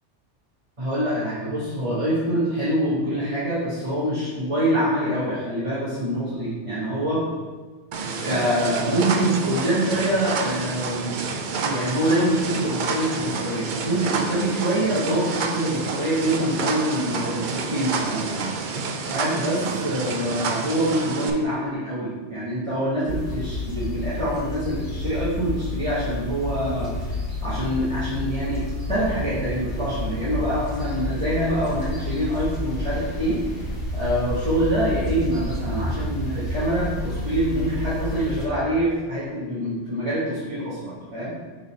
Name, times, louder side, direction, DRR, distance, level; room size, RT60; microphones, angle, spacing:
voice 1, 0.8-7.2 8.2-11.2 11.6-18.5 19.1-27.1 27.4-33.4 33.9-41.4, right 1 dB, 30° right, -11 dB, 1.3 m, -25 dB
sound 1, 7.9-21.3, right 4 dB, 55° right, 0.6 m, -29 dB
sound 2, 23.1-38.5, left 1 dB, 55° left, 1.8 m, -30 dB
5.7 x 3.9 x 4.1 m, 1.3 s
omnidirectional pair, 1.2 m